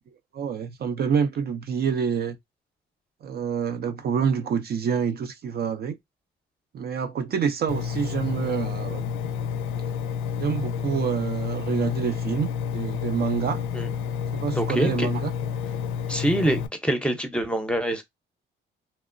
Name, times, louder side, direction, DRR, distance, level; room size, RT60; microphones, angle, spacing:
voice 1, 0.3-2.4 3.2-6.0 6.7-9.1 10.4-13.6 14.3-15.3, right 7 dB, 50° right, 0.5 m, -27 dB
Engine, 7.7-16.7, left 7 dB, 90° left, 0.4 m, -30 dB
voice 2, 14.6-15.1 16.1-18.0, right 1 dB, 5° left, 0.6 m, -25 dB
2.9 x 2.0 x 2.4 m
cardioid pair, 90°, 20 cm